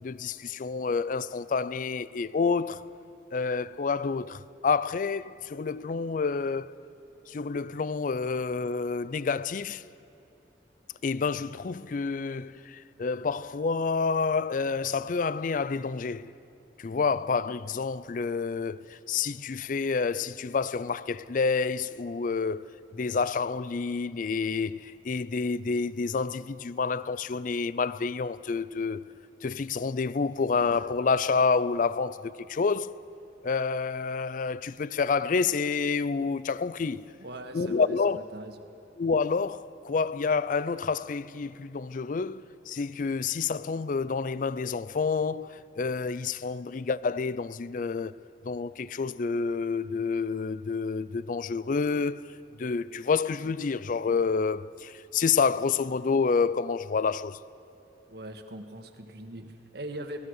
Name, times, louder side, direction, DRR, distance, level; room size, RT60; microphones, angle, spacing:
voice 1, 0.0-2.8 3.3-6.8 7.3-9.8 11.0-16.3 16.8-22.7 22.9-29.0 29.4-32.9 33.4-37.1 37.5-38.2 39.0-48.1 48.4-52.2 52.6-57.4, left 5 dB, 50° left, 0.4 m, -28 dB
voice 2, 37.2-38.5 58.1-60.2, right 1 dB, 65° right, 1.7 m, -41 dB
28.5 x 18.5 x 6.5 m
head